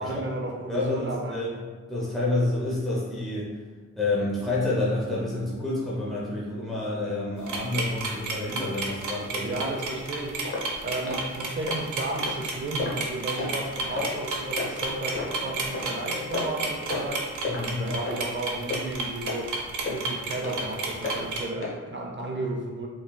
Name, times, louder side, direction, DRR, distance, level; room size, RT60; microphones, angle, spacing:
voice 1, 0.0-1.4 9.4-10.4 10.8-17.2 17.6-19.5 19.9-22.9, right 2 dB, 40° right, -1 dB, 0.5 m, -33 dB
voice 2, 0.7-3.6 4.0-9.6 17.5-18.0, left 2 dB, ahead, -7 dB, 0.6 m, -29 dB
sound 1, 7.4-21.4, right 3 dB, 85° right, 0.6 m, -31 dB
sound 2, 10.5-10.7 11.1-11.2 11.7-11.8 12.3-12.4 12.8-13.0 13.4-13.6 14.0-14.1 14.6-14.7 15.2-15.3 15.7-15.9 16.3-16.6 16.9-17.1 17.4-17.6 18.1-18.2 18.7-18.8 19.3-19.4 19.8-20.0 20.4-20.6 21.0-21.2 21.6-21.8 22.2-22.3, left 3 dB, 45° left, 0.8 m, -31 dB
Race car auto racing / Accelerating revving vroom, 12.7-18.1, left 2 dB, 25° left, 1.2 m, -43 dB
3.8 x 3.1 x 2.2 m, 1.4 s
wide cardioid pair, 110°, 29 cm